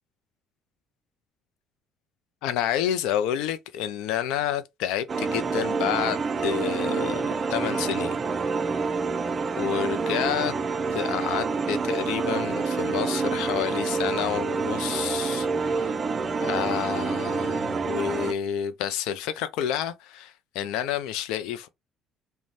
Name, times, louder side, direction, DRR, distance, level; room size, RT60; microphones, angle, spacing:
voice 1, 2.4-7.2 7.5-8.2 9.6-10.6 10.9-15.9 16.4-21.7, left 10 dB, 85° left, 0.4 m, -29 dB
sound 1, 5.1-18.3, right 4 dB, 35° right, 0.4 m, -27 dB
2.6 x 2.1 x 3.2 m
supercardioid pair, 85°, 0 cm